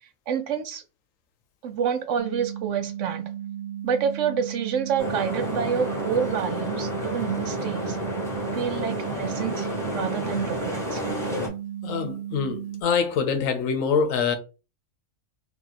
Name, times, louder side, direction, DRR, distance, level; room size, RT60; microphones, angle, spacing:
voice 1, 0.3-0.8 1.6-3.2 3.8-8.0 8.5-11.1, right 7 dB, 70° right, 1.0 m, -28 dB
sound 1, 2.2-12.8, right 10 dB, 55° right, 0.4 m, -35 dB
sound 2, 5.0-11.5, equal, ahead, 1.0 m, -30 dB
voice 2, 11.8-14.3, left 6 dB, 85° left, 1.1 m, -25 dB
3.0 x 2.8 x 3.9 m
omnidirectional pair, 1.3 m